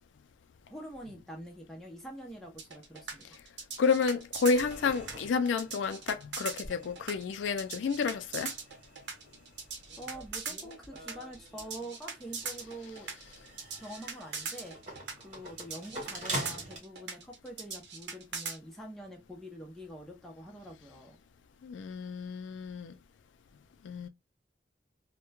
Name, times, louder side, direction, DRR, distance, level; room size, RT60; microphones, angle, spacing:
voice 1, 0.7-3.4 10.0-13.1 13.8-14.8 15.2-21.2, right 1 dB, ahead, 0.6 m, -45 dB
sound 1, 2.6-18.6, right 5 dB, 75° right, 0.8 m, -40 dB
voice 2, 3.8-8.5 21.6-23.0 23.8-24.1, left 5 dB, 90° left, 0.3 m, -30 dB
sound 2, 4.5-6.1 6.6-16.8, right 1 dB, 40° right, 1.3 m, -45 dB
2.9 x 2.1 x 2.2 m
head